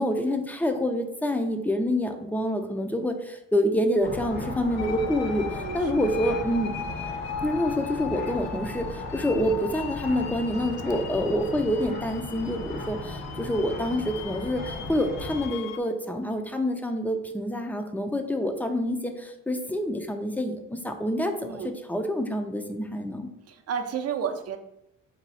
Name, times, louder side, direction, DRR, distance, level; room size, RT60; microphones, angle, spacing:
voice 1, 0.0-6.8 7.4-23.3, equal, 5° left, 5 dB, 0.4 m, -27 dB
sound 1, 4.0-15.5, left 1 dB, 90° left, 1.5 m, -37 dB
sound 2, 4.8-15.8, left 7 dB, 60° left, 0.4 m, -39 dB
voice 2, 5.4-5.8 21.4-21.7 23.5-24.6, right 7 dB, 55° right, 6 dB, 0.6 m, -31 dB
4.1 x 2.3 x 4.1 m, 0.82 s
cardioid pair, 90°, 30 cm